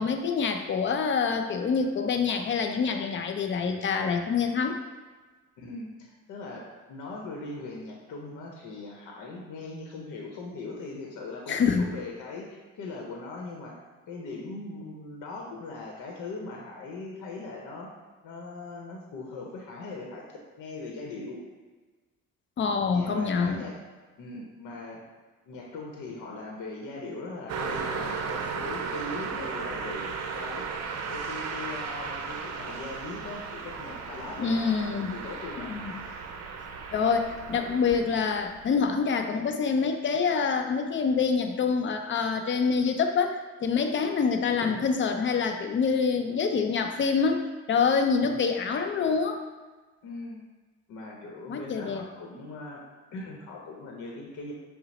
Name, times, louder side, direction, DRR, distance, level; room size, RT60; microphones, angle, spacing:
voice 1, 0.0-4.8 11.5-11.9 22.6-23.6 34.4-35.1 35.7-35.9 36.9-49.4 51.5-52.0, left 5 dB, 40° left, 5 dB, 0.5 m, -26 dB
voice 2, 5.6-17.9 18.2-21.4 22.9-23.8 24.2-25.0 25.5-30.1 30.3-30.7 31.1-35.7 48.2-48.5 50.0-50.4 50.9-52.8 53.1-54.5, left 3 dB, 85° left, -1 dB, 0.8 m, -40 dB
Car passing by, 27.5-38.9, right 5 dB, 60° right, 0.6 m, -35 dB
5.6 x 2.0 x 4.0 m, 1.3 s
cardioid pair, 90°, 30 cm